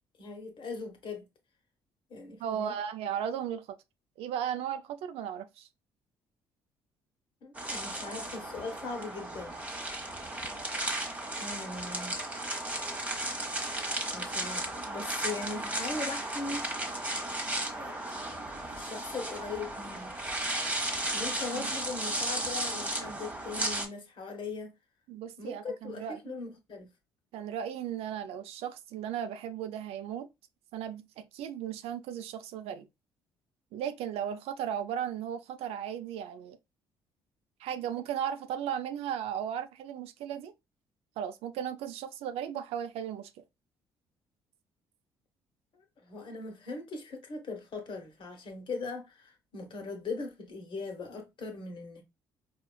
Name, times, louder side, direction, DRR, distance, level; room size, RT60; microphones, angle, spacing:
voice 1, 0.2-1.2 2.1-2.7 7.4-9.6 11.4-12.1 14.1-16.7 17.7-18.0 18.7-20.1 21.1-24.7 25.4-26.9 45.7-52.0, left 3 dB, 50° left, 1.2 m, -40 dB
voice 2, 2.4-3.7 4.2-5.7 21.5-21.7 25.1-26.3 27.3-30.3 30.7-32.9 33.7-36.6 37.6-40.5 41.2-43.3, right 9 dB, 70° right, 0.4 m, -36 dB
sound 1, 7.5-23.9, right 1 dB, 15° right, 1.1 m, -35 dB
4.4 x 2.4 x 2.3 m
hypercardioid pair, 55°, 11 cm